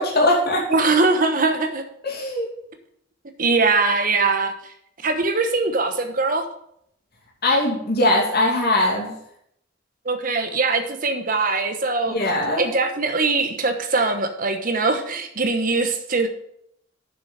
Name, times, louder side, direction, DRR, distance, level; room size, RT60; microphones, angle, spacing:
voice 1, 0.0-0.6 2.0-2.5 7.4-9.1 12.1-12.7, left 1 dB, 55° left, -3 dB, 2.5 m, -20 dB
voice 2, 0.7-1.8 3.4-4.5 5.0-6.5 10.0-12.2 12.6-16.3, right 3 dB, 45° right, 7 dB, 1.1 m, -21 dB
7.0 x 6.7 x 6.8 m, 0.72 s
head